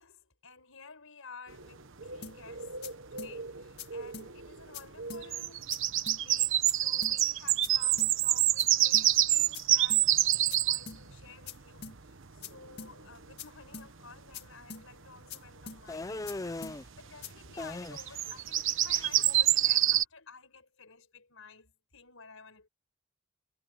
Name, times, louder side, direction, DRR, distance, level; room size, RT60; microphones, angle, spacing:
voice 1, 0.0-5.8 6.2-22.7, left 4 dB, 70° left, 5.4 m, -53 dB
sound 1, 1.5-1.7 2.0-12.2 12.9-13.0 13.2-13.3 13.6-13.7 15.6-15.7 16.0-16.3 16.9-20.0, right 12 dB, 60° right, 1.1 m, -27 dB
sound 2, 2.2-2.4 2.8-2.9 3.2-3.3 3.8-3.9 4.1-4.3 4.7-4.8 5.1-5.2 5.7-5.8 6.1-6.2 6.7-6.8 7.0-7.2 7.6-7.7 8.0-8.1 8.6-8.7 8.9-9.1 9.5-9.6 9.9-10.0 10.5-10.6 10.9-11.0 11.5-11.6 11.8-12.0 12.4-12.5 12.8-12.9 13.4-13.5 13.7-13.9 14.3-14.4 14.7-14.8 15.3-15.4 15.7-15.8 16.3-16.4 16.6-16.8 17.2-17.3, left 6 dB, 50° left, 2.0 m, -43 dB
sound 3, 15.9-16.8 17.6-18.3 18.6-19.4, left 2 dB, 15° left, 0.4 m, -39 dB
head